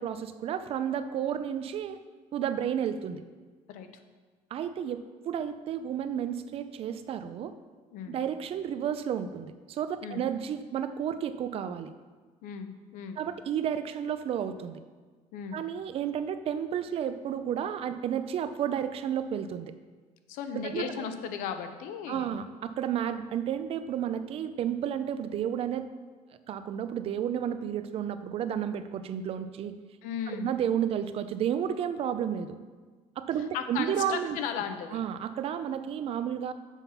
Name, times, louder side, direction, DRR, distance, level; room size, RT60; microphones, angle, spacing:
voice 1, 0.0-2.0 2.3-3.2 4.5-7.5 8.1-11.9 13.2-14.8 15.5-19.7 20.5-21.1 22.1-25.9 26.5-29.7 30.3-32.6 33.2-34.4 34.9-36.5, right 9 dB, 45° right, 11 dB, 0.5 m, -32 dB
voice 2, 12.4-13.2 15.3-15.6 20.3-22.3 30.0-30.5 33.5-35.0, left 7 dB, 90° left, 8 dB, 0.8 m, -36 dB
7.2 x 5.7 x 5.7 m, 1.4 s
cardioid pair, 150°, 13 cm